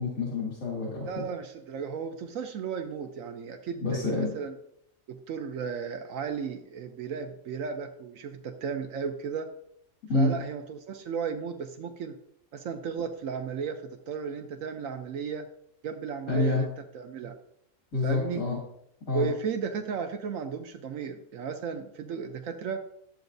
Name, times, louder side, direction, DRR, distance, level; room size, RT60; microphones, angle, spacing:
voice 1, 0.0-1.1 3.8-4.3 10.1-10.4 16.3-16.6 17.9-18.6 19.1-19.3, left 2 dB, 80° left, -4 dB, 2.7 m, -27 dB
voice 2, 1.1-4.6 5.1-9.5 10.1-12.2 12.5-15.5 15.8-16.7 16.9-17.3 18.0-18.4 19.1-22.8, right 6 dB, 80° right, 6 dB, 1.1 m, -34 dB
13.0 x 7.9 x 2.6 m, 0.75 s
omnidirectional pair, 1.4 m